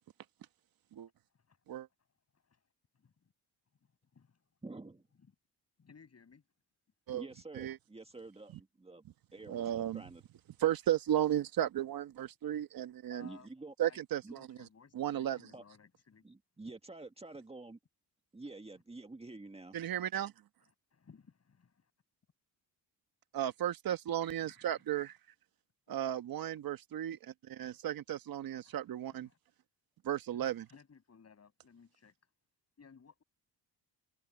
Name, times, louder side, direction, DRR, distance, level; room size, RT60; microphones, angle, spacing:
voice 1, 2.9-3.3 4.1-4.5 5.8-6.4 12.5-12.6 13.1-13.5 13.8-16.3 20.6-21.9 24.4-24.6 28.5-28.7 29.1-29.4 30.7-32.1 32.8-33.2, left 6 dB, 40° left, 7.1 m, -60 dB
voice 2, 4.6-5.1 7.1-9.0 9.3-10.2 13.2-13.7 14.2-14.3 15.5-15.6 16.2-17.8 18.3-19.8, right 2 dB, 15° right, 1.9 m, -48 dB
voice 3, 9.5-10.0 10.6-13.3 13.8-14.7 14.9-15.4 19.7-20.3 23.3-25.2 25.9-29.3 30.0-30.7, right 11 dB, 65° right, 1.4 m, -34 dB
cardioid pair, 80°, 38 cm